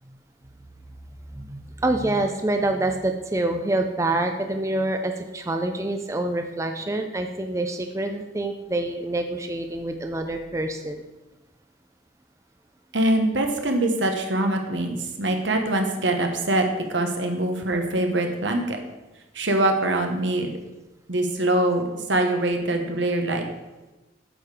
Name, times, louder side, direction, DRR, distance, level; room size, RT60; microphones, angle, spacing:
voice 1, 1.3-11.0, right 2 dB, 15° right, 5 dB, 0.5 m, -26 dB
voice 2, 12.9-18.8 19.3-20.6 21.1-23.5, right 1 dB, 80° right, 4 dB, 1.3 m, -23 dB
8.9 x 6.7 x 4.9 m, 1.1 s
head